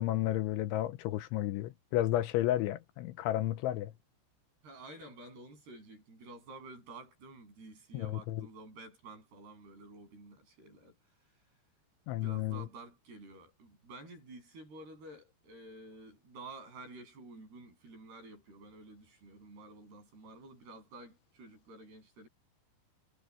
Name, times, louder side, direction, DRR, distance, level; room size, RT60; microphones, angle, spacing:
voice 1, 0.0-3.9 7.9-8.5 12.1-12.6, left 13 dB, 80° left, 3.2 m, -32 dB
voice 2, 4.6-11.6 12.1-22.3, right 2 dB, 55° right, 9.9 m, -51 dB
omnidirectional pair, 5.7 m